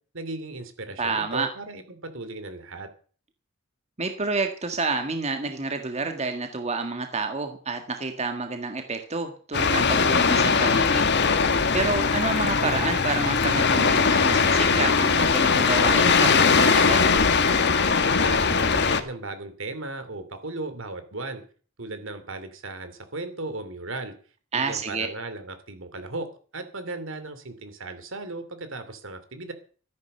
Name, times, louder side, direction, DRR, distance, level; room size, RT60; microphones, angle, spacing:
voice 1, 0.1-2.9 18.2-21.4 21.8-24.1 24.5-26.3 26.5-29.5, right 2 dB, 70° right, 10 dB, 2.6 m, -36 dB
voice 2, 1.0-1.5 4.0-11.1 11.7-17.1 24.5-25.1, right 3 dB, 35° right, 6 dB, 1.7 m, -29 dB
sound 1, 9.5-19.0, left 5 dB, 55° left, 1.6 m, -20 dB
13.5 x 10.5 x 6.6 m, 0.42 s
head